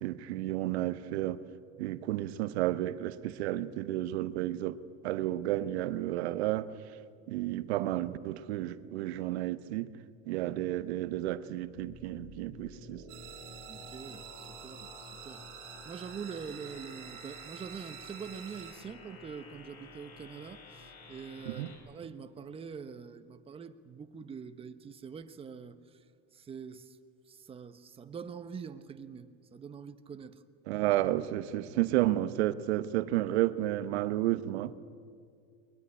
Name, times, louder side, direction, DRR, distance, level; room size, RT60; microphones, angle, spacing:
voice 1, 0.0-1.4 1.8-4.8 5.0-6.7 7.3-9.9 10.3-13.0 21.5-21.7 30.7-34.7, right 15 dB, 90° right, 1.0 m, -31 dB
sound 1, 11.8-21.8, left 2 dB, 75° left, 7.3 m, -51 dB
sound 2, 13.1-18.7, right 11 dB, 60° right, 3.0 m, -48 dB
voice 2, 13.7-15.4 15.8-26.0 26.3-27.0 27.3-30.4, right 6 dB, 20° right, 1.0 m, -45 dB
21.5 x 21.0 x 9.9 m
supercardioid pair, 145°, 32 cm